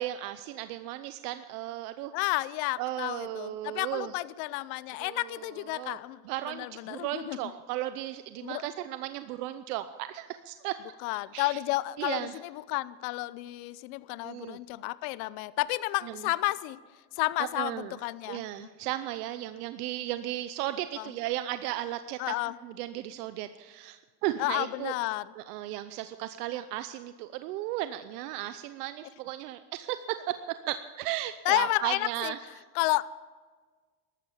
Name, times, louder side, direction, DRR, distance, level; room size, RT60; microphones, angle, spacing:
voice 1, 0.0-2.1 2.8-4.2 5.0-6.0 6.3-10.8 11.3-11.6 12.0-12.4 14.2-14.6 16.1-16.2 17.4-18.0 18.3-22.3 22.6-24.9 25.4-32.4, right 14 dB, 80° right, 11 dB, 0.8 m, -35 dB
voice 2, 2.1-7.5 8.4-8.7 11.0-16.8 17.1-18.7 21.0-21.1 22.2-22.6 24.4-25.3 31.4-32.3 32.7-33.0, left 19 dB, 65° left, 19 dB, 0.7 m, -31 dB
13.5 x 12.5 x 7.2 m, 1.5 s
supercardioid pair, 120°, 46 cm